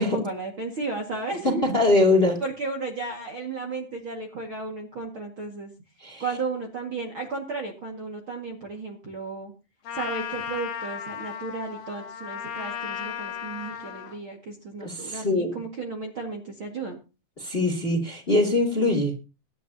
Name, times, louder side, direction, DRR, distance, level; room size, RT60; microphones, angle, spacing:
voice 1, 0.0-1.8 2.4-5.7 6.2-9.5 9.9-17.0, right 3 dB, 40° right, 1 dB, 2.2 m, -34 dB
voice 2, 1.4-2.4 6.0-6.2 14.8-15.6 17.4-19.2, left 2 dB, 15° left, 4 dB, 2.4 m, -22 dB
Trumpet, 9.9-14.2, left 7 dB, 60° left, 2.7 m, -35 dB
23.0 x 11.0 x 2.9 m, 0.30 s
omnidirectional pair, 4.7 m